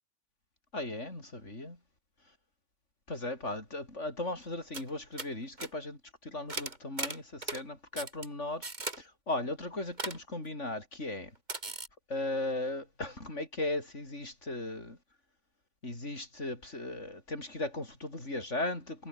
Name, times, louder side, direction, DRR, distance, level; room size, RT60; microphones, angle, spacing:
voice 1, 0.7-1.8 3.1-8.7 9.0-11.3 11.7-11.8 12.1-15.0 15.8-19.1, left 2 dB, 65° left, 6.3 m, -37 dB
sound 1, 4.4-4.5 4.7-4.9 5.2-5.3 5.6-5.7 6.5-7.6 8.0-8.3 8.6-9.0 10.0-10.2 11.5-11.9, right 2 dB, 35° right, 2.8 m, -37 dB
omnidirectional pair, 1.3 m